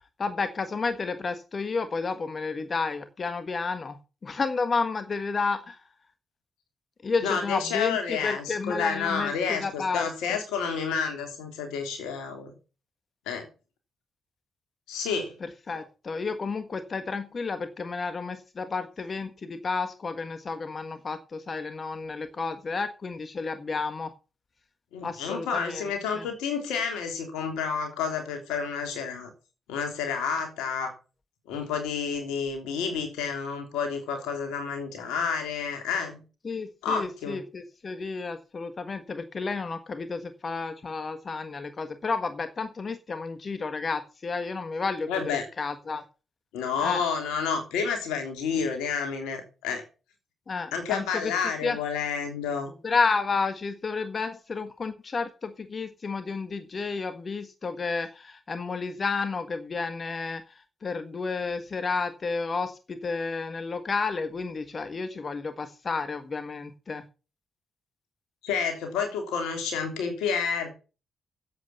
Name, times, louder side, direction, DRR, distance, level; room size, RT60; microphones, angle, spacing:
voice 1, 0.2-5.8 7.0-10.0 15.4-24.1 25.0-26.3 36.4-46.0 46.8-47.0 50.5-51.3 51.6-51.8 52.8-67.0, left 4 dB, 45° left, 10 dB, 1.5 m, -31 dB
voice 2, 7.2-12.5 13.3-13.5 14.9-15.4 24.9-29.3 29.7-30.9 31.5-36.2 36.8-37.4 45.1-45.5 46.5-49.8 50.7-52.7 68.4-70.7, left 6 dB, 80° left, 5 dB, 3.2 m, -30 dB
11.0 x 8.1 x 6.9 m, 0.34 s
hypercardioid pair, 45°, 0 cm